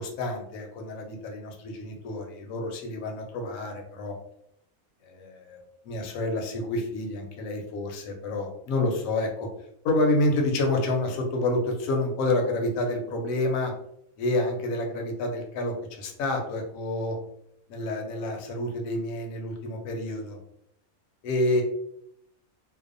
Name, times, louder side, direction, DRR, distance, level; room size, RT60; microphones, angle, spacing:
voice 1, 0.0-4.1 5.1-5.6 5.9-9.5 9.8-13.7 14.2-17.2 17.7-20.4 21.2-21.6, left 2 dB, 70° left, 2 dB, 1.0 m, -28 dB
2.6 x 2.1 x 2.4 m, 0.75 s
omnidirectional pair, 1.5 m